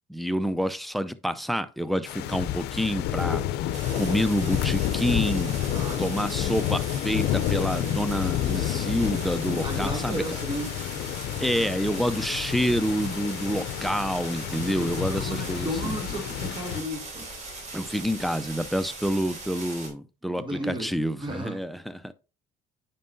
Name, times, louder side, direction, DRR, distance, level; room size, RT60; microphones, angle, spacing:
voice 1, 0.1-3.4 3.9-5.5 6.0-10.2 11.4-15.9 17.7-22.1, equal, ahead, 0.4 m, -28 dB
sound 1, 2.1-16.8, left 12 dB, 80° left, 0.5 m, -30 dB
sound 2, 3.7-19.9, right 3 dB, 45° right, 3.5 m, -40 dB
voice 2, 5.7-6.2 9.6-10.8 14.6-17.3 20.4-21.6, right 1 dB, 30° right, 1.8 m, -34 dB
9.2 x 5.4 x 2.6 m
cardioid pair, 110°, 17 cm